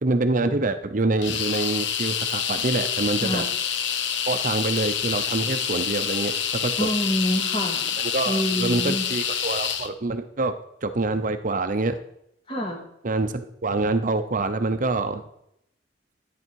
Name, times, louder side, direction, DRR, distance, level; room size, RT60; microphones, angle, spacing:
voice 1, 0.0-3.4 4.3-6.9 8.0-10.5 10.8-12.0 13.0-15.2, right 2 dB, 45° right, 9 dB, 0.7 m, -26 dB
sound 1, 1.2-9.9, left 8 dB, 85° left, 0.9 m, -27 dB
voice 2, 6.8-8.0 8.3-9.1 12.5-12.8, equal, 30° left, 2 dB, 2.3 m, -27 dB
12.5 x 9.5 x 4.6 m, 0.78 s
head